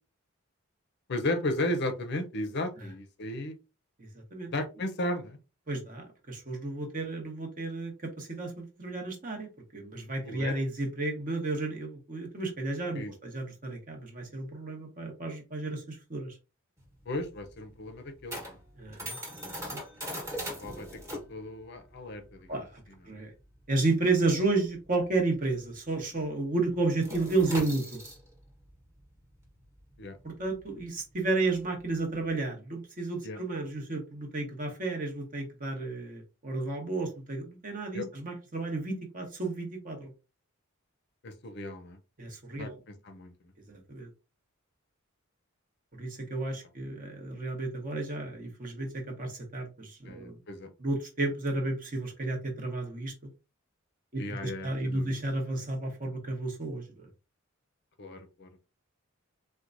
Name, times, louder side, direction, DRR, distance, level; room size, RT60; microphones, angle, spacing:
voice 1, 1.1-3.5 4.5-5.4 10.2-10.5 12.9-13.1 17.1-18.6 20.6-22.6 30.0-30.2 33.2-33.4 37.9-38.1 41.2-42.0 42.6-43.3 50.0-50.7 54.2-55.1 58.0-58.7, left 1 dB, 50° left, 8 dB, 0.5 m, -35 dB
voice 2, 4.0-4.5 5.7-16.4 18.8-19.8 20.1-20.2 22.5-22.8 23.1-23.3 23.7-28.0 30.2-40.1 42.2-42.8 43.7-44.1 45.9-50.4 50.8-53.1 54.1-57.1, right 2 dB, 40° right, 2 dB, 1.0 m, -32 dB
sound 1, 16.8-25.7 26.0-26.3 26.6-32.3, equal, 15° right, 1.1 m, -41 dB
4.4 x 2.2 x 2.5 m, 0.29 s
head